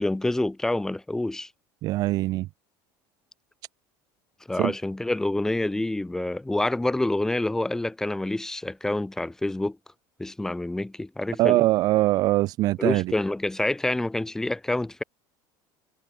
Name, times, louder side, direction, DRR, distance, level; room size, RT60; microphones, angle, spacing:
voice 1, 0.0-1.5 4.5-9.8 10.2-11.6 12.8-15.0, left 2 dB, 5° left, 2.1 m, -27 dB
voice 2, 1.8-2.5 4.6-4.7 11.4-13.1, right 17 dB, 40° right, 0.4 m, -22 dB
cardioid pair, 170°, 10 cm